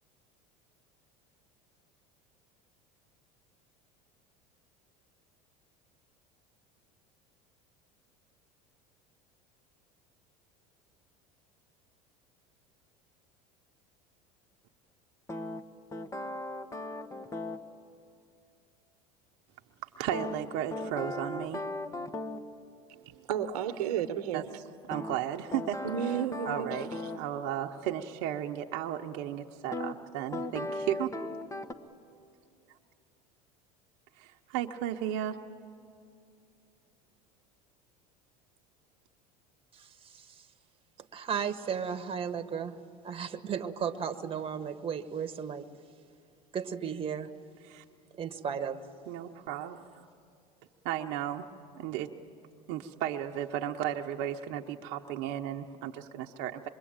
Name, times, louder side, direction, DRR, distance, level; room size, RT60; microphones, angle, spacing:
sound 1, 15.3-17.6 20.1-22.5 24.9-27.2 29.7-29.9 30.3-31.7, left 2 dB, 15° left, 1.3 m, -37 dB
voice 1, 20.0-21.6 24.3-24.4 24.9-25.8 26.4-31.1 34.2-35.4 47.6-47.8 49.1-49.9 50.8-51.5 51.7-52.1 52.7-56.7, right 11 dB, 65° right, 1.0 m, -34 dB
voice 2, 22.9-24.5 25.8-27.1, right 9 dB, 85° right, 1.2 m, -33 dB
voice 3, 39.7-40.5 41.1-42.8 43.0-45.7 46.5-47.3 48.1-48.8, right 7 dB, 30° right, 1.4 m, -35 dB
26.0 x 22.5 x 8.9 m
supercardioid pair, 95°, 19 cm